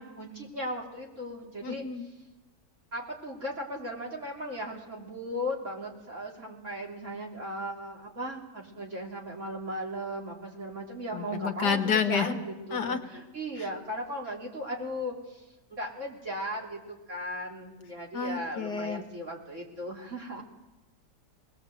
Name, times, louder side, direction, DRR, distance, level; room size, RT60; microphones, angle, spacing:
voice 1, 0.0-2.1 2.9-20.4, equal, 45° right, -2 dB, 3.8 m, -37 dB
voice 2, 1.6-2.0 11.1-12.4 12.7-13.0 18.1-19.0, left 6 dB, 75° left, 7 dB, 2.0 m, -29 dB
20.5 x 19.0 x 7.8 m, 1.1 s
omnidirectional pair, 1.9 m